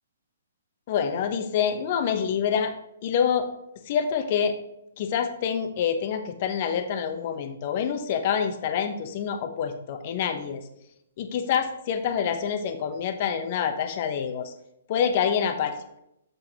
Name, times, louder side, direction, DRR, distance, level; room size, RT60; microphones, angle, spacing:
voice 1, 0.9-2.7 3.0-3.5 3.9-4.5 5.0-10.6 11.2-14.5 14.9-15.7, left 7 dB, 45° left, 8 dB, 0.8 m, -26 dB
6.8 x 5.7 x 2.9 m, 0.80 s
figure-of-eight pair, 125°, 0 cm